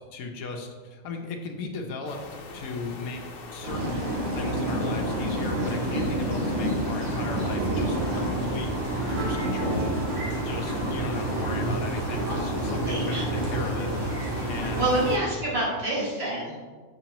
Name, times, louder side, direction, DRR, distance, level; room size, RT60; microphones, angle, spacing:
voice 1, 0.1-2.2 2.5-3.2 3.5-8.0 8.3-8.7 9.1-10.0 10.5-13.9 14.5-15.0 15.4-15.6, left 3 dB, 80° left, 2 dB, 1.2 m, -37 dB
sound 1, 2.1-15.2, left 3 dB, 50° left, 0.8 m, -42 dB
sound 2, 3.6-15.1, right 1 dB, 70° right, 2.2 m, -28 dB
sound 3, 9.2-12.1, right 4 dB, 90° right, 1.2 m, -43 dB
voice 2, 12.3-13.2 14.7-16.5, right 1 dB, 45° right, -7 dB, 2.3 m, -28 dB
7.2 x 6.0 x 2.9 m, 1.4 s
omnidirectional pair, 1.5 m